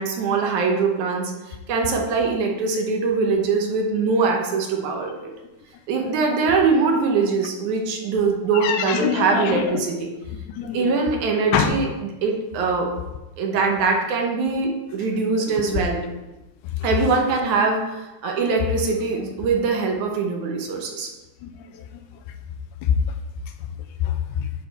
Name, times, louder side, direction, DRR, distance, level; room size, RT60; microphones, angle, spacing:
voice 1, 0.0-1.3 1.7-5.3 5.9-10.1 10.7-12.9 13.4-16.0 16.8-21.1, right 4 dB, 75° right, 1 dB, 2.3 m, -22 dB
voice 2, 1.9-2.3 8.5-9.9 10.4-11.2 11.5-11.7 15.5-15.8 16.6-16.9 20.8-20.9 21.4-22.0 22.3-22.4 22.8-23.0 23.6-24.5, left 7 dB, 85° left, 6 dB, 2.1 m, -26 dB
9.8 x 4.4 x 4.0 m, 1.0 s
omnidirectional pair, 3.6 m